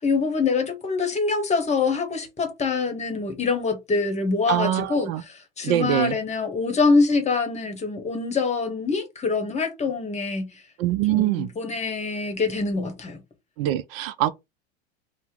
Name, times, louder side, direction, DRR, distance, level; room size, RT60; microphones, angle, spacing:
voice 1, 0.0-5.1 5.6-10.5 11.1-13.2, left 4 dB, 20° left, 1.0 m, -24 dB
voice 2, 4.5-5.2 5.6-6.2 10.8-11.5 13.6-14.3, right 13 dB, 60° right, 0.5 m, -23 dB
2.7 x 2.1 x 3.6 m
hypercardioid pair, 100°, 34 cm